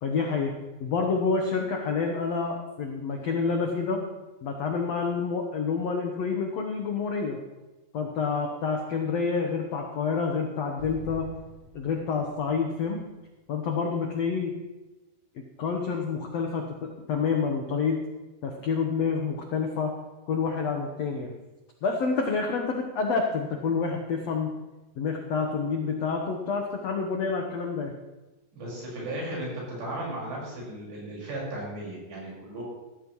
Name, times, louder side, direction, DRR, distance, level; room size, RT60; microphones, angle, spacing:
voice 1, 0.0-0.5 0.8-4.0 4.4-7.4 7.9-11.3 11.7-13.0 13.5-14.5 15.3-18.0 18.4-19.9 20.3-21.3 21.8-24.5 25.0-27.9, left 5 dB, 80° left, 2 dB, 1.5 m, -28 dB
Explosion, 10.8-14.1, equal, 30° right, 1.5 m, -48 dB
voice 2, 28.5-32.6, right 1 dB, 85° right, -5 dB, 7.6 m, -35 dB
17.0 x 14.0 x 3.1 m, 1.1 s
omnidirectional pair, 4.8 m